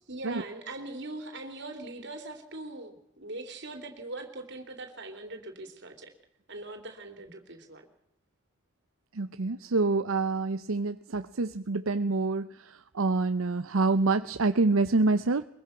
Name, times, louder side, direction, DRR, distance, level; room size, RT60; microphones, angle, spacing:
voice 1, 0.1-6.1 6.5-7.8, right 2 dB, 55° right, 5 dB, 3.5 m, -41 dB
voice 2, 9.1-15.4, right 3 dB, 80° right, 11 dB, 0.7 m, -27 dB
23.0 x 22.5 x 5.9 m, 0.83 s
head